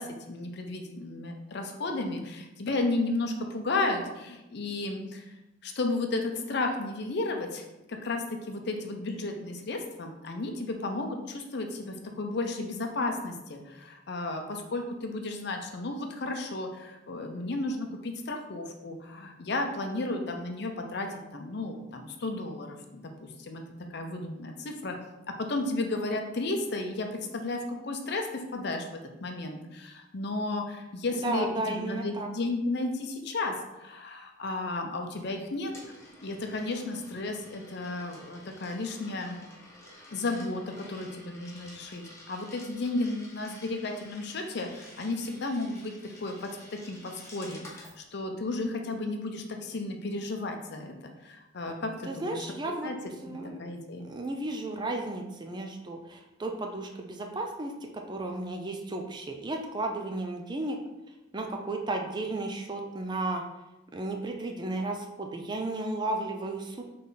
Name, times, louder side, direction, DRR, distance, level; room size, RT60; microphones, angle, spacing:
voice 1, 0.0-5.3 5.6-23.6 23.9-24.9 25.5-35.7 36.2-39.4 40.1-45.9 46.2-52.5 52.8-53.0 53.3-54.1, left 2 dB, 60° left, 4 dB, 0.6 m, -33 dB
voice 2, 31.2-32.3 52.1-52.9 53.2-53.6 54.0-60.8 61.3-63.4 63.9-66.8, right 2 dB, 20° right, 3 dB, 0.4 m, -34 dB
Coin (dropping), 35.2-48.0, left 1 dB, 15° left, 0.9 m, -51 dB
3.9 x 3.3 x 4.0 m, 0.98 s
head